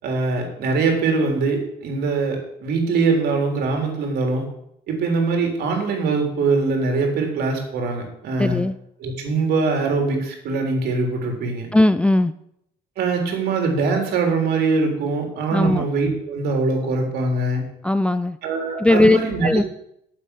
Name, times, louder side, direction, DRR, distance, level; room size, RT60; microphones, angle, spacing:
voice 1, 0.0-4.4 4.9-8.6 9.0-11.7 13.0-17.6 18.4-19.6, right 3 dB, 70° right, 2 dB, 3.6 m, -22 dB
voice 2, 8.4-8.7 11.7-12.3 15.5-15.8 17.8-18.4 18.8-19.2 19.4-19.6, left 1 dB, 5° left, 12 dB, 0.4 m, -17 dB
9.1 x 7.7 x 8.4 m, 0.76 s
cardioid pair, 110°, 17 cm